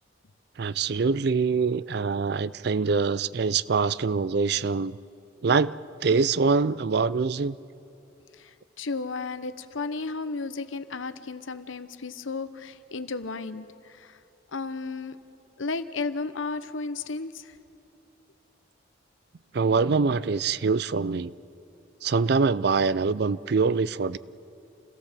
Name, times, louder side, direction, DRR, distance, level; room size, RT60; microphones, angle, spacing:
voice 1, 0.6-5.0 5.4-5.8 6.0-7.6 19.5-21.3 22.0-24.2, right 4 dB, 55° right, 18 dB, 0.4 m, -24 dB
voice 2, 8.4-14.2 14.5-15.2 15.6-17.6, left 3 dB, 85° left, 12 dB, 0.9 m, -34 dB
28.0 x 17.0 x 7.5 m, 2.7 s
head